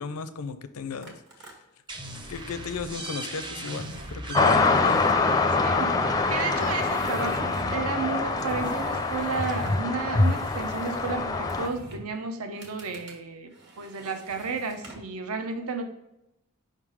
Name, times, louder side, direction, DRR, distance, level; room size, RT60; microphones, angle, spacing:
voice 1, 0.0-1.5 2.3-5.1, left 4 dB, 85° left, 11 dB, 0.5 m, -35 dB
sound 1, 1.0-1.5 2.0-3.2 3.5-5.4 6.5-7.9 8.3-9.9 10.1-12.1 12.5-13.2 13.5-15.1, right 1 dB, 55° right, 1.4 m, -46 dB
sound 2, 1.9-7.3, right 2 dB, 20° right, 0.6 m, -40 dB
sound 3, 4.3-11.7, left 3 dB, 15° left, 0.4 m, -24 dB
voice 2, 5.5-13.5 13.8-15.8, right 4 dB, 75° right, 6 dB, 0.6 m, -32 dB
5.4 x 3.7 x 4.8 m, 0.88 s
head